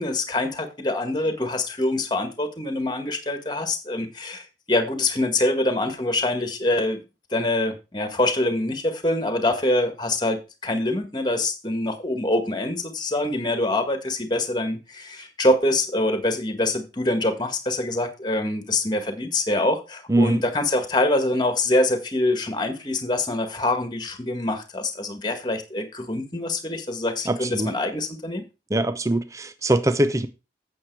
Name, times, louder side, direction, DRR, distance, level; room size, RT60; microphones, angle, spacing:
voice 1, 0.0-7.0 7.3-28.4, left 2 dB, 25° left, 1.7 m, -25 dB
voice 2, 20.1-20.4 27.3-27.7 28.7-30.3, right 1 dB, 15° right, 0.6 m, -22 dB
8.7 x 7.7 x 4.7 m
head